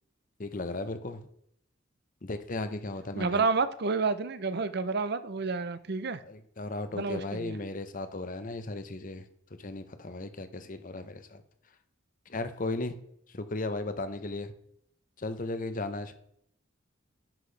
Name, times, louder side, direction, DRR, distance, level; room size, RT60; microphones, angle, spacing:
voice 1, 0.4-1.2 2.2-3.5 6.2-9.2 9.6-11.4 12.3-13.0 13.3-14.5 15.2-16.1, left 2 dB, 40° left, 10 dB, 0.8 m, -36 dB
voice 2, 3.2-6.2 6.9-7.6, right 4 dB, 55° right, 13 dB, 0.6 m, -29 dB
10.5 x 6.0 x 3.3 m, 0.71 s
head